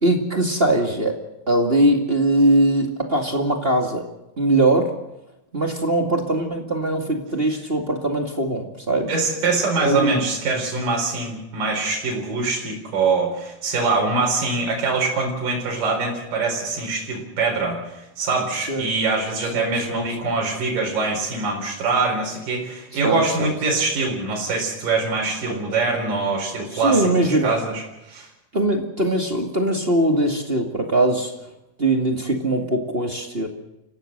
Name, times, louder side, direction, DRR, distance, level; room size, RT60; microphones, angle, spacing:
voice 1, 0.0-1.2 1.5-4.0 4.4-4.9 5.5-9.1 9.8-10.2 18.7-18.9 19.5-20.1 23.0-23.8 25.5-25.6 26.7-27.5 28.5-31.3 31.8-33.5, right 1 dB, 20° right, 3 dB, 1.7 m, -21 dB
voice 2, 9.1-28.3, right 3 dB, 65° right, -1 dB, 6.0 m, -24 dB
29.5 x 16.0 x 6.7 m, 0.91 s
omnidirectional pair, 4.1 m